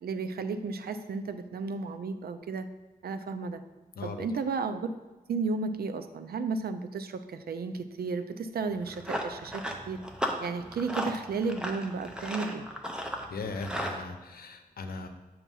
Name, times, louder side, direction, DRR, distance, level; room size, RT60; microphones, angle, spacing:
voice 1, 0.0-2.7 3.0-3.6 4.0-5.0 5.3-9.6 9.9-10.0 10.4-12.7, right 4 dB, 85° right, 9 dB, 0.5 m, -33 dB
voice 2, 4.0-4.3 13.3-15.1, left 3 dB, 80° left, 6 dB, 0.7 m, -38 dB
Run, 8.7-14.0, equal, 5° right, 0.6 m, -36 dB
8.2 x 2.9 x 5.4 m, 1.2 s
wide cardioid pair, 120°, 15 cm